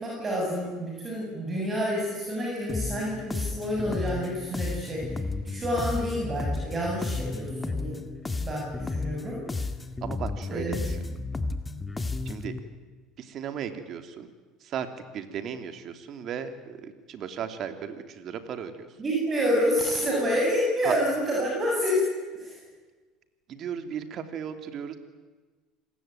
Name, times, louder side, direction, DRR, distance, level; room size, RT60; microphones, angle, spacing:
voice 1, 0.0-5.0 5.4-8.0 8.4-9.4 10.5-10.8 19.0-22.1 22.3-22.6, equal, 30° right, -2 dB, 7.4 m, -28 dB
sound 1, 2.7-12.6, left 3 dB, 15° left, 2.0 m, -33 dB
voice 2, 10.0-11.0 12.2-12.5 13.2-14.3 14.6-14.9 15.1-18.9 20.8-20.9 23.5-25.0, right 8 dB, 50° right, 8 dB, 3.1 m, -36 dB
27.5 x 19.5 x 9.2 m, 1.3 s
supercardioid pair, 100°, 0 cm